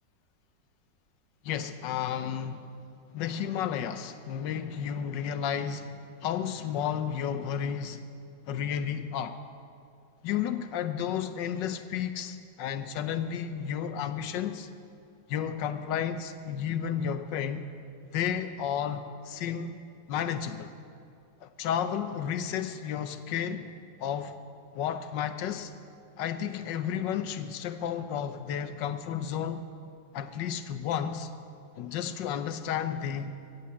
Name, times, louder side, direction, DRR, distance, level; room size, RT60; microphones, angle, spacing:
voice 1, 1.4-2.8 3.1-8.1 8.5-9.4 10.2-14.7 15.3-17.7 18.1-19.8 20.1-20.7 21.4-23.7 24.0-24.3 24.7-25.7 26.2-29.6 30.1-31.3 31.8-33.3, left 8 dB, 85° left, 10 dB, 1.4 m, -32 dB
15.0 x 8.2 x 8.5 m, 2.5 s
omnidirectional pair, 1.9 m